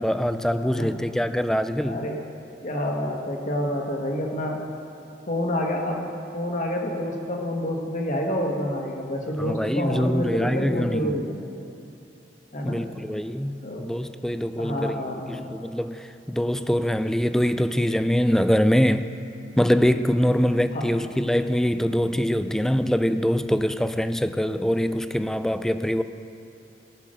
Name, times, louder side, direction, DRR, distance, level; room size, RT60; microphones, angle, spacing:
voice 1, 0.0-2.1 9.4-11.1 12.6-19.1 19.6-26.0, equal, 5° left, 10 dB, 0.3 m, -24 dB
voice 2, 1.8-2.2 2.6-4.6 5.3-11.5 12.5-12.8 13.6-13.9 14.6-15.5 20.7-20.8, left 1 dB, 45° left, 0 dB, 1.5 m, -28 dB
17.5 x 6.0 x 6.4 m, 2.7 s
head